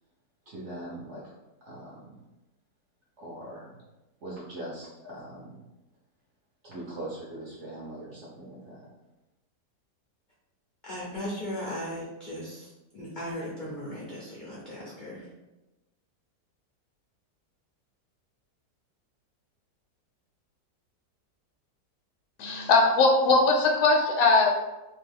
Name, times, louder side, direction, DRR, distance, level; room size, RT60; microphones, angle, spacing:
voice 1, 0.5-1.2 1.6-2.1 3.2-3.8 4.2-5.6 6.6-8.9, right 1 dB, 60° right, -6 dB, 0.8 m, -41 dB
voice 2, 10.8-15.3, equal, 60° left, -7 dB, 0.4 m, -37 dB
voice 3, 22.4-24.5, left 3 dB, 75° left, 2 dB, 1.1 m, -20 dB
2.9 x 2.3 x 3.4 m, 1.0 s
omnidirectional pair, 1.8 m